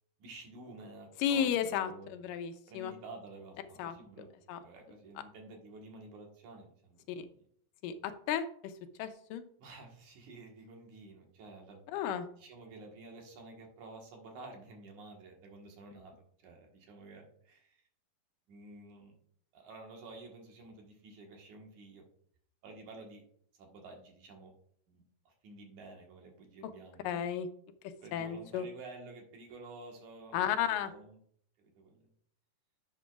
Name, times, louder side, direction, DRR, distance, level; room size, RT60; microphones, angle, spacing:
voice 1, 0.2-2.1 2.7-4.3 4.6-7.0 9.6-11.8 12.4-16.1 16.4-17.8 18.5-19.2 19.5-22.0 22.6-23.2 23.6-24.5 24.9-27.2 28.0-31.2 31.6-32.1, right 2 dB, 65° right, 1 dB, 2.9 m, -51 dB
voice 2, 1.2-2.9 3.8-4.0 4.5-4.6 7.1-7.3 7.8-8.7 9.0-9.4 11.9-12.3 27.0-27.5 28.1-28.7 30.3-30.9, left 9 dB, 85° left, 9 dB, 2.3 m, -33 dB
11.0 x 7.5 x 2.4 m, 0.62 s
omnidirectional pair, 3.8 m